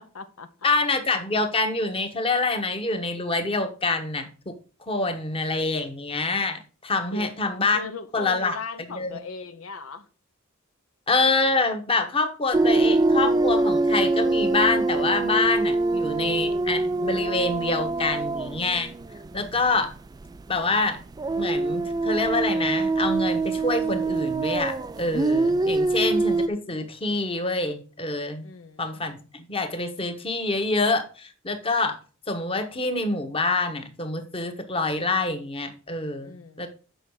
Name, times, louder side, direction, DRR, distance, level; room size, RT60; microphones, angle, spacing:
voice 1, 0.0-0.7 7.1-7.3 7.7-10.1 19.4-19.6 25.8-26.0 28.4-29.0 36.2-36.7, left 4 dB, 80° left, 0.8 m, -39 dB
voice 2, 0.6-4.6 4.9-7.8 8.1-8.6 8.9-9.2 11.1-18.9 19.3-19.9 20.5-21.0 21.4-28.4 28.8-32.0 32.3-36.3 36.6-36.7, left 3 dB, 25° left, 1.2 m, -26 dB
sound 1, 12.5-19.9 20.2-20.4 21.1-26.5, right 2 dB, 20° right, 0.3 m, -24 dB
7.8 x 5.6 x 4.7 m
head